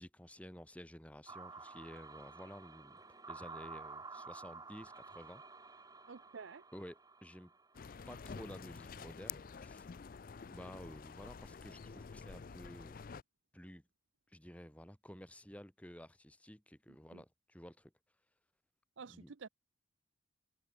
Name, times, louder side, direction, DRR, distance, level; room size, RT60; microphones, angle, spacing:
voice 1, 0.0-3.0 3.3-5.4 6.7-7.5 8.1-9.9 10.5-13.0 13.5-13.8 14.3-17.9 19.1-19.3, equal, 5° left, 2.3 m, -52 dB
sound 1, 1.3-8.4, right 4 dB, 20° right, 3.5 m, -52 dB
voice 2, 6.1-6.6 17.1-17.2 19.0-19.5, right 5 dB, 75° right, 0.6 m, -50 dB
sound 2, 7.7-13.2, left 6 dB, 45° left, 0.4 m, -49 dB
head